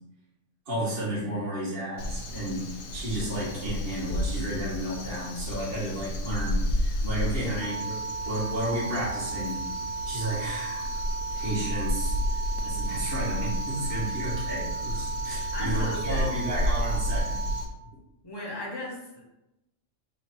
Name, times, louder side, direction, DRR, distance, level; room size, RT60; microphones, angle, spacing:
voice 1, 0.7-8.0 8.2-9.6 10.1-10.9 11.3-12.2 12.6-17.5, right 1 dB, 45° right, -7 dB, 1.4 m, -32 dB
Crow, 2.0-17.6, left 1 dB, 80° left, 1.0 m, -32 dB
sound 1, 7.6-17.6, right 4 dB, 85° right, 1.3 m, -35 dB
voice 2, 15.5-16.7 18.2-19.3, left 1 dB, 25° left, -3 dB, 0.7 m, -37 dB
3.2 x 2.5 x 4.3 m, 0.91 s
omnidirectional pair, 1.3 m